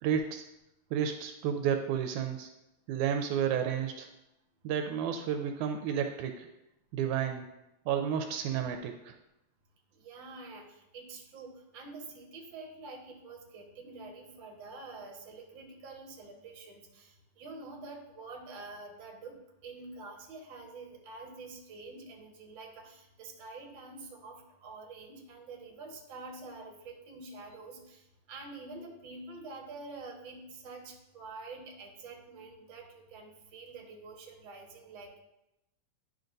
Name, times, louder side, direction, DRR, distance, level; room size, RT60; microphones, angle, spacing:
voice 1, 0.0-0.4 0.9-2.5 2.9-4.1 4.6-6.5 6.9-7.4 7.9-9.2, right 8 dB, 80° right, 6 dB, 1.9 m, -31 dB
voice 2, 9.9-19.3 19.6-35.2, right 3 dB, 50° right, 0 dB, 1.7 m, -47 dB
10.5 x 6.2 x 2.6 m, 0.89 s
omnidirectional pair, 3.5 m